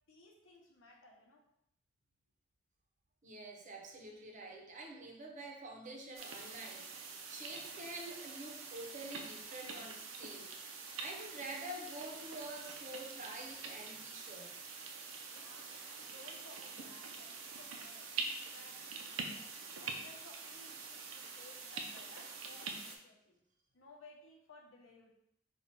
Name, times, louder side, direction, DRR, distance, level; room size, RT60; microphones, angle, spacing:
voice 1, 0.1-1.4 15.3-18.1 18.5-19.5 19.8-23.4 23.7-25.1, left 2 dB, 80° left, 0 dB, 0.9 m, -59 dB
voice 2, 3.2-10.5 11.0-14.5, right 2 dB, 40° right, 1 dB, 0.7 m, -47 dB
sound 1, 6.1-23.0, right 4 dB, 90° right, 0.6 m, -45 dB
4.1 x 2.4 x 4.4 m, 0.77 s
head